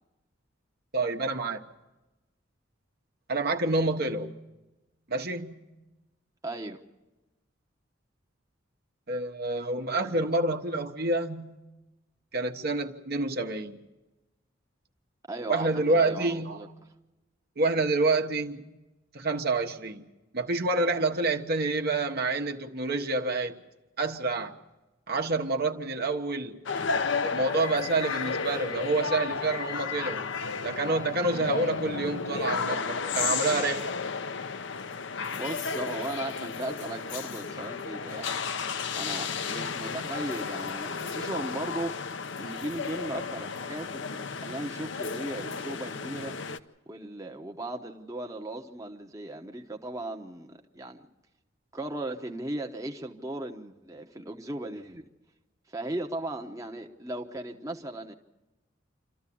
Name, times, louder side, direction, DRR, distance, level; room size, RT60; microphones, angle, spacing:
voice 1, 0.9-1.6 3.3-4.4 5.1-5.6 9.1-11.6 12.3-13.8 15.5-16.6 17.6-18.6 19.1-20.1 20.3-23.6 24.0-24.6 25.1-26.6 27.2-30.2 30.6-34.0, right 2 dB, 55° right, 1.3 m, -28 dB
voice 2, 6.4-6.8 15.3-16.7 35.3-38.5 38.9-42.0 42.4-46.4 46.9-51.1 51.7-55.1 55.7-58.1, right 1 dB, 15° right, 1.1 m, -37 dB
sound 1, 26.7-46.6, left 5 dB, 65° left, 0.8 m, -33 dB
27.5 x 13.5 x 8.6 m
head